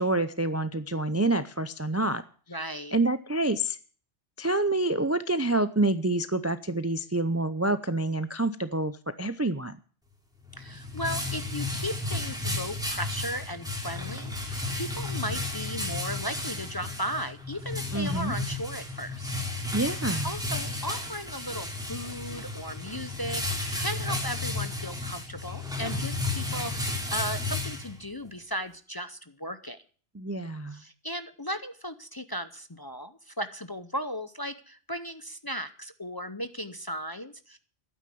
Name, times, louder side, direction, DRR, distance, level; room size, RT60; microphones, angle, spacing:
voice 1, 0.0-2.2 2.9-3.8 4.4-9.8 17.9-18.3 19.7-20.3 30.1-30.8, right 2 dB, 20° right, 12 dB, 0.4 m, -27 dB
voice 2, 2.5-2.9 10.6-19.3 20.2-29.8 30.7-37.6, equal, 25° left, 11 dB, 0.6 m, -36 dB
sound 1, 10.4-28.3, left 2 dB, 5° right, 2.8 m, -33 dB
12.0 x 9.5 x 7.7 m, 0.43 s
omnidirectional pair, 1.2 m